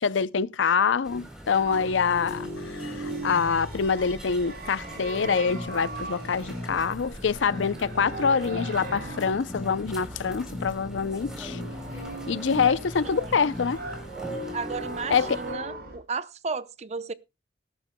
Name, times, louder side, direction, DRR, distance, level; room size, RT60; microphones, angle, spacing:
voice 1, 0.0-11.6 12.3-13.8 15.1-15.4, left 6 dB, 85° left, 0.5 m, -25 dB
sound 1, 1.0-15.5, equal, 5° right, 3.5 m, -44 dB
sound 2, 1.6-16.0, right 1 dB, 55° right, 5.4 m, -38 dB
sound 3, 5.4-14.4, left 1 dB, 15° left, 2.1 m, -40 dB
voice 2, 12.6-13.5 14.5-17.1, right 4 dB, 35° right, 0.6 m, -34 dB
19.5 x 11.0 x 2.2 m
head